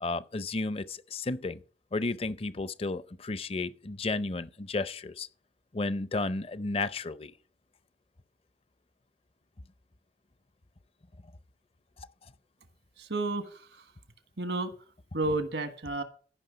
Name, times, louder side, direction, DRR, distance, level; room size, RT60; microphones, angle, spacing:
voice 1, 0.0-1.6 1.9-5.3 5.7-7.3, left 3 dB, 35° left, 0.5 m, -33 dB
voice 2, 13.0-13.8 14.4-14.7 15.1-16.0, right 2 dB, 80° right, 1.4 m, -31 dB
15.0 x 6.1 x 5.1 m
head